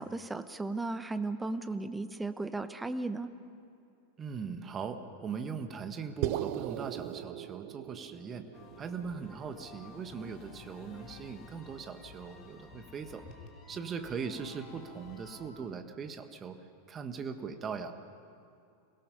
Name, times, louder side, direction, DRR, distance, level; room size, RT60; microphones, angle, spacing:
voice 1, 0.0-3.3, right 2 dB, 10° right, 11 dB, 0.9 m, -35 dB
voice 2, 4.2-8.4 8.8-13.3 13.7-16.6 16.9-17.9, right 6 dB, 25° right, 8 dB, 1.4 m, -40 dB
sound 1, 6.2-10.6, right 14 dB, 45° right, 0.6 m, -39 dB
sound 2, 8.5-15.5, left 4 dB, 30° left, 2.5 m, -53 dB
27.5 x 18.0 x 5.6 m, 2.6 s
figure-of-eight pair, 90°, 0 cm